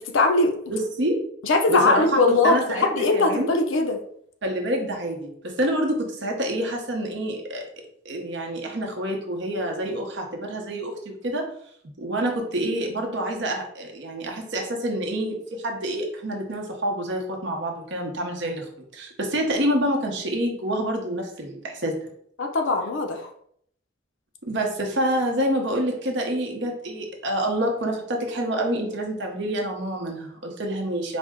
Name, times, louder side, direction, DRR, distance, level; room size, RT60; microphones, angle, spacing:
voice 1, 0.1-0.6 1.4-4.0 22.4-23.3, left 3 dB, 80° left, 5 dB, 0.5 m, -21 dB
voice 2, 0.7-1.2 1.7-3.5 4.4-7.6 8.0-11.5 12.0-22.0 24.5-31.2, right 1 dB, 65° right, 1 dB, 0.8 m, -27 dB
4.2 x 2.0 x 3.5 m, 0.67 s
head